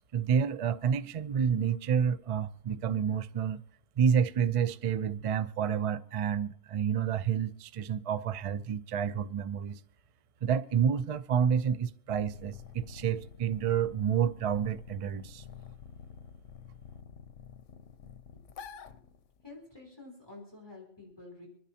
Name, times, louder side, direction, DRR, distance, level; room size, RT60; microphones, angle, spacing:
voice 1, 0.0-3.6 4.0-9.8 10.4-15.4, right 8 dB, 55° right, 0.4 m, -29 dB
sound 1, 12.1-19.6, left 7 dB, 85° left, 1.1 m, -49 dB
voice 2, 18.3-18.8 19.4-21.5, left 3 dB, 20° left, 3.5 m, -50 dB
26.0 x 10.5 x 2.8 m
omnidirectional pair, 1.2 m